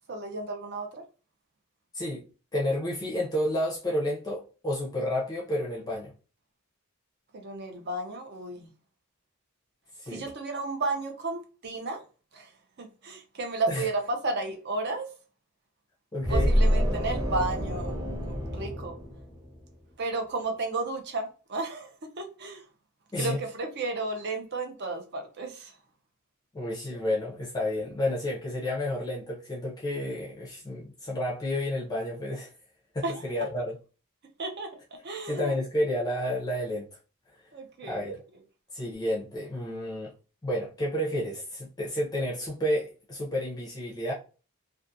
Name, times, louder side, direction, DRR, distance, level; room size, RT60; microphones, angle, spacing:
voice 1, 0.1-1.0 7.3-8.7 10.1-12.0 12.3-12.5 12.8-15.1 16.3-18.0 18.3-19.0 20.0-21.9 22.2-22.6 23.2-25.7 33.0-33.2 34.4-34.7 35.0-35.5 37.5-38.0, right 3 dB, 50° right, 0.6 m, -33 dB
voice 2, 1.9-6.1 10.0-10.3 13.7-13.9 16.1-16.6 23.1-23.4 26.5-32.5 32.9-33.8 35.3-36.9 37.8-38.2 38.7-40.1 40.4-44.1, left 1 dB, 20° left, 0.5 m, -30 dB
sound 1, 16.2-19.7, equal, 20° right, 1.1 m, -27 dB
2.4 x 2.4 x 2.6 m
head